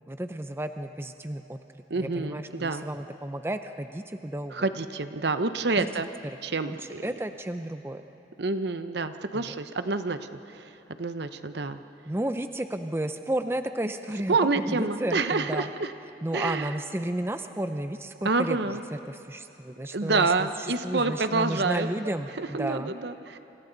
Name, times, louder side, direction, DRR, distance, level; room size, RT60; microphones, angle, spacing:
voice 1, 0.1-1.6 1.9-4.7 5.8-5.9 6.7-6.8 7.0-8.0 9.3-9.5 12.1-15.7 16.2-18.6 19.1-22.9, right 1 dB, 15° right, 8 dB, 0.5 m, -32 dB
voice 2, 1.9-2.9 4.5-6.1 6.4-7.1 8.4-10.2 10.5-10.7 11.0-11.8 14.3-15.9 16.3-16.7 18.2-18.8 19.9-21.9 22.4-23.4, right 3 dB, 65° right, 10 dB, 0.8 m, -28 dB
27.5 x 26.5 x 4.0 m, 3.0 s
head